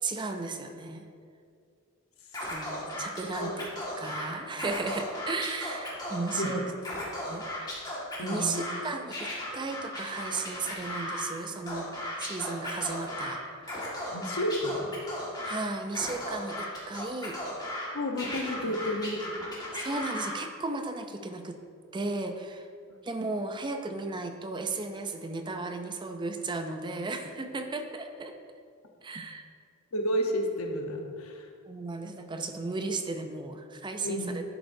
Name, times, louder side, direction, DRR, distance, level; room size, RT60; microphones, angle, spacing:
voice 1, 0.0-1.1 2.4-3.7 4.0-6.6 7.3-7.9 8.2-11.9 12.2-13.7 15.4-17.4 18.6-18.7 19.8-21.6 21.9-22.7 23.0-28.3 29.0-29.5 31.7-34.4, right 3 dB, 20° right, 6 dB, 0.5 m, -35 dB
Scratching (performance technique), 2.3-4.2 4.5-6.5 6.8-8.8 9.1-11.3 11.7-13.3 13.6-15.6 15.9-17.9 18.2-20.4, left 1 dB, 20° left, 1.7 m, -36 dB
voice 2, 8.2-8.7 14.1-14.9 17.9-19.5 29.9-31.5 34.0-34.3, equal, 75° left, 3 dB, 1.0 m, -31 dB
10.5 x 7.8 x 2.7 m, 2.3 s
head